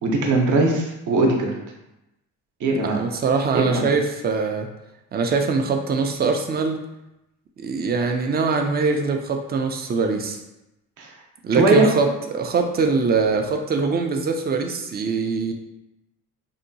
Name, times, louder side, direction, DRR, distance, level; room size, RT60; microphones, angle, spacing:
voice 1, 0.0-1.5 2.6-3.0 3.5-3.8 11.0-11.1 11.5-11.9, right 2 dB, 55° right, 1 dB, 0.7 m, -20 dB
voice 2, 2.9-4.7 5.1-6.8 7.6-10.4 11.4-15.5, right 4 dB, 25° right, 4 dB, 0.4 m, -23 dB
2.8 x 2.1 x 2.7 m, 0.92 s
supercardioid pair, 70°, 36 cm